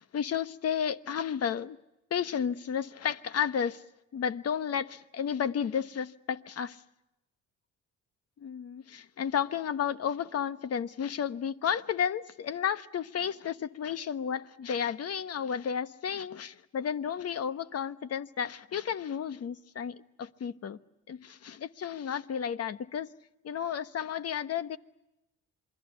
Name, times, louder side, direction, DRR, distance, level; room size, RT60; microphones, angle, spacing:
voice 1, 0.0-1.8 2.1-3.8 4.1-6.8 8.4-20.8 21.1-23.1 23.4-24.8, left 8 dB, 55° left, 1.2 m, -32 dB
27.5 x 22.0 x 8.2 m
cardioid pair, 90°, 30 cm